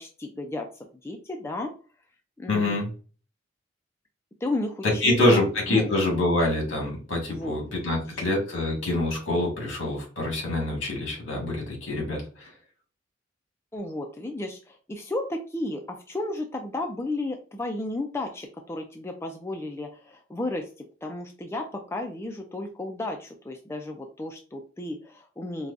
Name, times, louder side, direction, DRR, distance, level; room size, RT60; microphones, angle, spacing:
voice 1, 0.0-1.7 2.4-2.8 4.4-6.2 7.3-8.0 13.7-25.7, left 2 dB, 15° left, 3 dB, 0.3 m, -33 dB
voice 2, 2.5-2.9 4.8-12.5, left 2 dB, 75° left, -1 dB, 1.7 m, -25 dB
4.6 x 2.2 x 2.5 m, 0.36 s
head